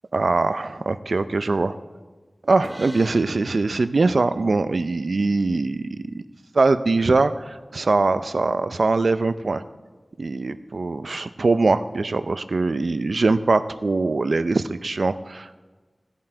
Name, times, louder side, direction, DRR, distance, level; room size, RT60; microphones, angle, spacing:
voice 1, 0.1-1.7 2.4-5.9 6.1-6.2 6.5-9.6 10.2-15.6, right 3 dB, 80° right, 12 dB, 0.4 m, -22 dB
sound 1, 2.6-6.1, equal, 15° right, 1.0 m, -45 dB
16.0 x 7.5 x 4.4 m, 1.3 s
wide cardioid pair, 65°, 0 cm